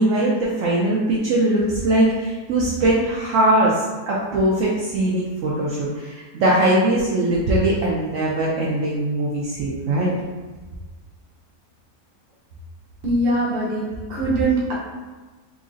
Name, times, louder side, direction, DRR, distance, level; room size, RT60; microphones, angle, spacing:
voice 1, 0.0-10.1, right 1 dB, 70° right, -5 dB, 0.7 m, -21 dB
voice 2, 13.0-14.7, right 2 dB, 45° right, -6 dB, 0.9 m, -22 dB
3.0 x 2.5 x 3.8 m, 1.3 s
omnidirectional pair, 1.8 m